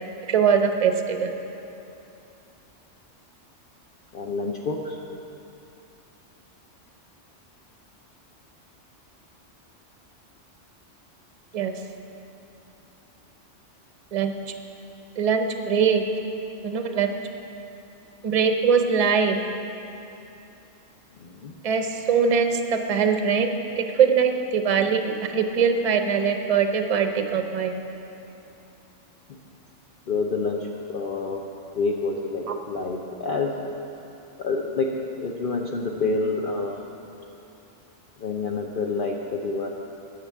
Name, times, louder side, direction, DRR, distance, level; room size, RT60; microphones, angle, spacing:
voice 1, 0.3-1.3 11.5-11.7 14.1-14.3 15.2-16.0 16.6-17.1 18.2-19.4 21.6-27.7 32.5-32.6, right 6 dB, 40° right, 6 dB, 0.6 m, -22 dB
voice 2, 4.1-5.0 21.2-21.5 29.3-29.4 30.1-31.4 31.7-33.6 34.4-36.8 38.2-39.7, left 3 dB, 50° left, 0 dB, 0.8 m, -28 dB
10.5 x 6.7 x 8.3 m, 2.8 s
omnidirectional pair, 1.3 m